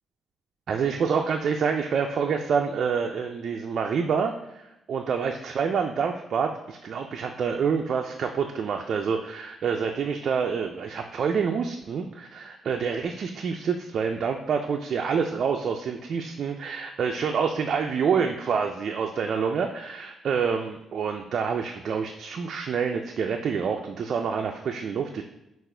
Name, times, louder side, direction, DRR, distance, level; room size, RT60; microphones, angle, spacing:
voice 1, 0.7-25.2, right 6 dB, 55° right, 3 dB, 0.3 m, -27 dB
5.8 x 2.4 x 3.3 m, 0.91 s
cardioid pair, 90°, 0 cm